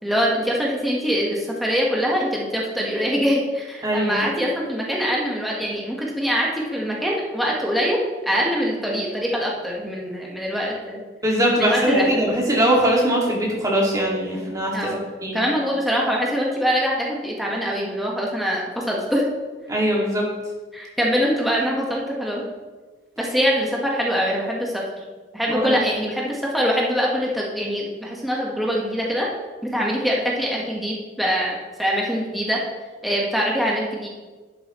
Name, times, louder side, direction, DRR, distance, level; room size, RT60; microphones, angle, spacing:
voice 1, 0.0-11.0 11.6-12.1 14.7-15.0 15.3-19.3 19.8-19.9 20.7-22.4 23.2-24.8 25.3-29.3 29.6-32.6 33.0-34.1, equal, ahead, -3 dB, 1.3 m, -23 dB
voice 2, 3.8-4.2 11.2-14.7 15.2-15.4 19.7-20.2 25.5-25.8, equal, 20° right, -4 dB, 2.1 m, -21 dB
11.0 x 7.9 x 3.1 m, 1.3 s
head